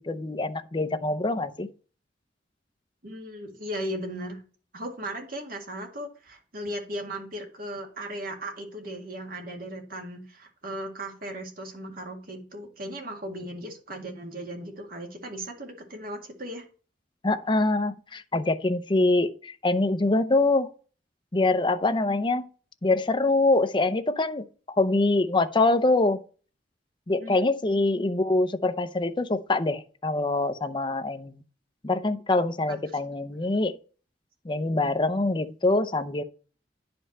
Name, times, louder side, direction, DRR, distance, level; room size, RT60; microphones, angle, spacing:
voice 1, 0.0-1.7 17.2-20.7 21.3-22.5 22.8-24.4 24.8-26.2 27.1-31.4 31.8-33.8 34.4-36.2, left 2 dB, 25° left, 0.6 m, -24 dB
voice 2, 3.0-4.4 4.7-16.6 27.2-27.4, right 1 dB, 55° right, 2.1 m, -37 dB
9.8 x 5.2 x 4.3 m
head